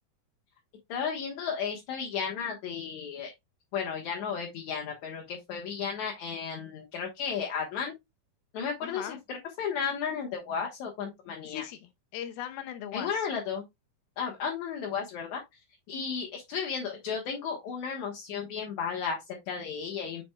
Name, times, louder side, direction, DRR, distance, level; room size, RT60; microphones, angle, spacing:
voice 1, 0.9-3.3 3.7-7.9 8.5-11.6 12.9-13.6 14.2-15.4 15.9-20.2, left 6 dB, 60° left, 2.3 m, -34 dB
voice 2, 8.8-9.2 11.4-13.3, left 10 dB, 80° left, 2.8 m, -39 dB
7.7 x 6.1 x 2.3 m
omnidirectional pair, 4.3 m